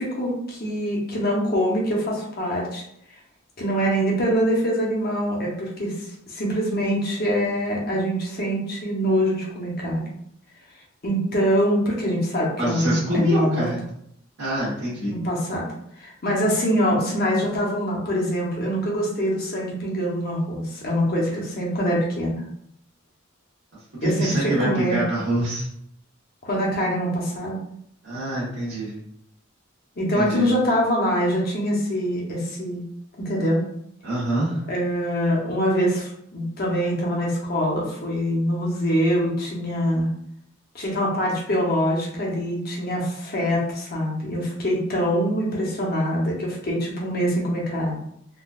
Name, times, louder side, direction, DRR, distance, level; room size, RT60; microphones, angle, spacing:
voice 1, 0.0-2.8 3.6-10.0 11.0-13.7 15.1-15.7 16.0-22.4 24.0-25.0 26.4-27.6 30.0-32.9 33.2-33.6 34.7-40.1 40.7-48.0, equal, 50° left, -3 dB, 0.9 m, -24 dB
voice 2, 12.6-13.9 14.4-15.1 24.0-25.7 28.0-28.9 30.1-30.4 34.0-34.6, right 1 dB, 60° right, -9 dB, 1.1 m, -25 dB
3.7 x 2.3 x 2.4 m, 0.71 s
head